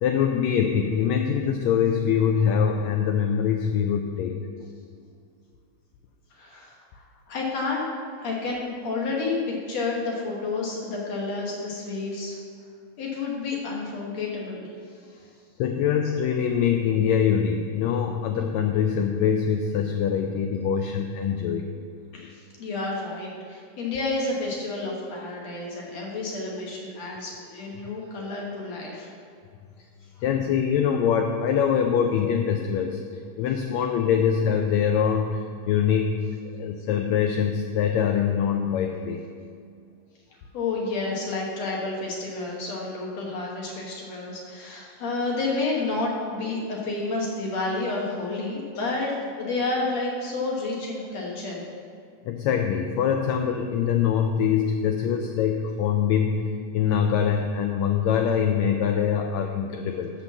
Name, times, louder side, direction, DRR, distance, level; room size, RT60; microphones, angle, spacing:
voice 1, 0.0-4.4 15.6-21.7 30.2-33.0 33.4-39.2 52.2-60.1, left 7 dB, 80° left, 4 dB, 1.6 m, -24 dB
voice 2, 6.4-7.9 8.2-12.4 13.0-14.7 15.0-15.2 22.1-29.1 40.5-51.6, left 3 dB, 60° left, -2 dB, 2.2 m, -30 dB
11.0 x 4.5 x 7.2 m, 2.3 s
omnidirectional pair, 3.7 m